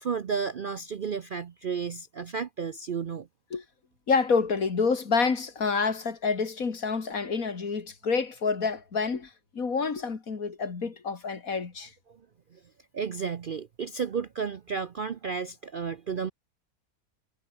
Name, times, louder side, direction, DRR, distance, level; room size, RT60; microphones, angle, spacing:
voice 1, 0.0-3.3 12.1-12.2 12.5-12.6 12.9-16.3, right 6 dB, 50° right, 0.6 m, -32 dB
voice 2, 4.1-11.9, left 5 dB, 65° left, 2.7 m, -28 dB
omnidirectional pair, 1.6 m